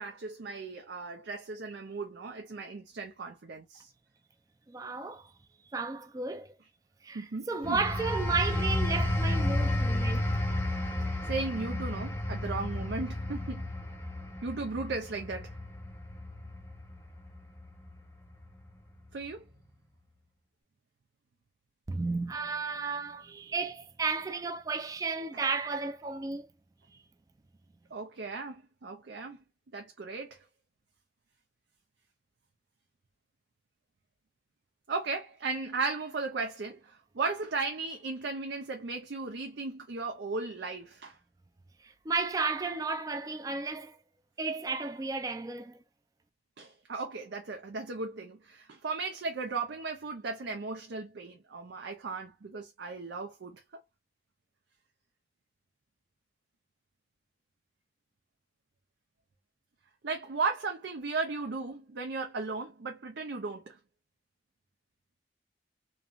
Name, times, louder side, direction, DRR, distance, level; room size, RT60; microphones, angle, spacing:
voice 1, 0.0-3.9 7.1-7.8 11.2-13.7 14.4-15.6 19.1-19.5 25.3-25.4 27.9-29.4 29.7-30.4 34.9-41.2 46.6-53.8 60.0-63.8, right 4 dB, 85° right, 0.6 m, -36 dB
voice 2, 4.7-5.3 5.7-6.5 7.0-10.3 21.9-26.5 41.8-44.0 44.4-45.8, right 4 dB, 20° right, 0.3 m, -33 dB
sound 1, 7.6-18.0 18.4-18.7, left 1 dB, 15° left, 0.6 m, -32 dB
3.1 x 2.7 x 2.3 m
head